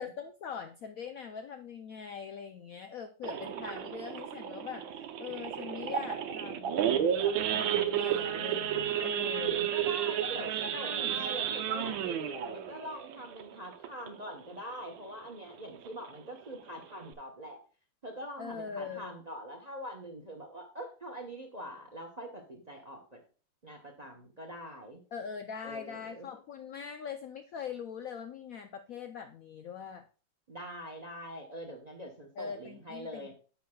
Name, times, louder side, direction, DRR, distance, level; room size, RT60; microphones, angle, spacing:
voice 1, 0.0-9.7 10.8-11.2 18.4-19.2 25.1-30.1 32.4-33.3, left 7 dB, 75° left, 8 dB, 0.7 m, -42 dB
Idling / Accelerating revving vroom / Sawing, 3.2-14.3 14.7-14.9 15.2-15.3 15.7-16.0 16.5-16.6 16.8-17.1, right 9 dB, 85° right, 1.5 m, -32 dB
voice 2, 9.7-17.6 18.0-23.2 23.6-25.0 25.6-26.3 30.5-33.3, equal, 35° right, 3 dB, 0.7 m, -44 dB
10.5 x 6.8 x 2.2 m, 0.38 s
omnidirectional pair, 2.1 m